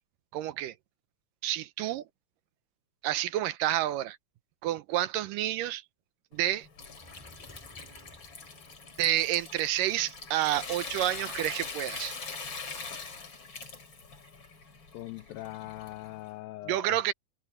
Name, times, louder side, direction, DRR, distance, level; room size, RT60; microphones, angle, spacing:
voice 1, 0.3-0.7 1.4-2.0 3.0-4.2 4.6-5.8 6.3-6.7 9.0-12.2 16.7-17.1, right 13 dB, 80° right, 2.2 m, -29 dB
Water tap faucet / Sink (filling or washing) / Trickle dribble, 6.3-16.3, left 4 dB, 35° left, 3.8 m, -42 dB
sound 1, 6.9-9.1, equal, 10° right, 0.7 m, -56 dB
voice 2, 14.9-17.1, left 17 dB, 85° left, 2.4 m, -41 dB
omnidirectional pair, 4.1 m